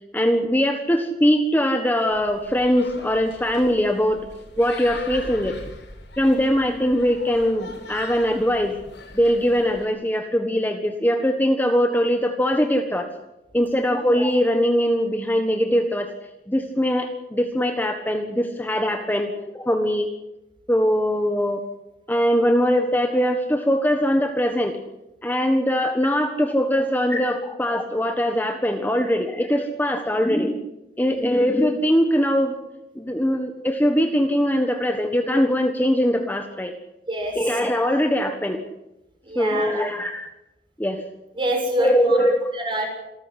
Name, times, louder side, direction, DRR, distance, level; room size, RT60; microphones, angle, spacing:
voice 1, 0.1-4.3 4.6-5.6 6.2-8.8 9.1-13.1 13.5-16.1 16.5-20.1 20.7-21.6 22.1-24.8 25.2-30.5 31.0-32.6 32.9-36.7 37.3-38.6 39.3-40.3 40.8-41.0 41.8-42.4, equal, 10° left, 5 dB, 1.5 m, -21 dB
sound 1, 2.1-9.9, left 2 dB, 90° left, 6.5 m, -41 dB
voice 2, 37.1-37.5 39.2-39.9 41.3-42.9, right 1 dB, 30° right, 2 dB, 7.4 m, -27 dB
27.5 x 13.5 x 10.0 m, 0.96 s
head